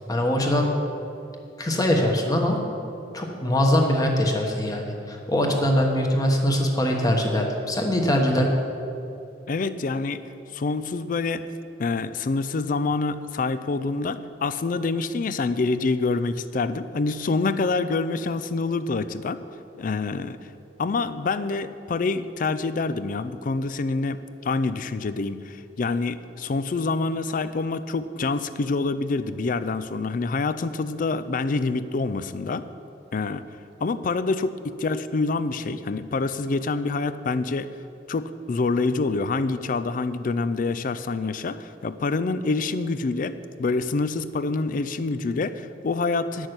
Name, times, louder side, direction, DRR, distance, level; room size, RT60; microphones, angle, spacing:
voice 1, 0.1-0.7 1.6-2.6 3.1-8.5, left 1 dB, 20° left, 1 dB, 1.2 m, -22 dB
voice 2, 9.5-10.2 10.5-11.4 11.8-19.4 19.8-20.4 20.8-32.6 33.1-33.4 33.8-37.7 38.1-46.5, left 3 dB, 45° left, 13 dB, 0.4 m, -26 dB
10.0 x 6.3 x 7.9 m, 2.8 s
head